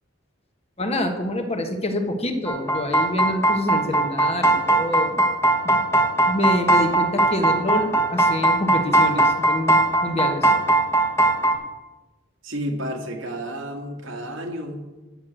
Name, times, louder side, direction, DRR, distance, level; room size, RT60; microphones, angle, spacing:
voice 1, 0.8-5.2 5.6-5.8 6.2-10.5, left 1 dB, 30° left, 5 dB, 1.3 m, -26 dB
sound 1, 2.5-11.6, right 2 dB, 15° left, 1.3 m, -19 dB
voice 2, 12.4-14.8, equal, 85° right, 3 dB, 1.9 m, -31 dB
9.8 x 6.4 x 7.5 m, 1.1 s
head